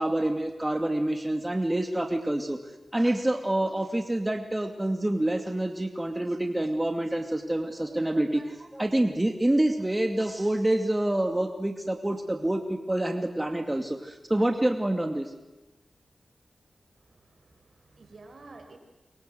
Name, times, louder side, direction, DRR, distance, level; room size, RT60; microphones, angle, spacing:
voice 1, 0.0-2.6 2.9-15.3, right 1 dB, 20° right, 6 dB, 2.4 m, -27 dB
voice 2, 17.0-18.8, right 3 dB, 65° right, 6 dB, 5.0 m, -51 dB
27.5 x 24.0 x 7.9 m, 1.1 s
cardioid pair, 40°, 0 cm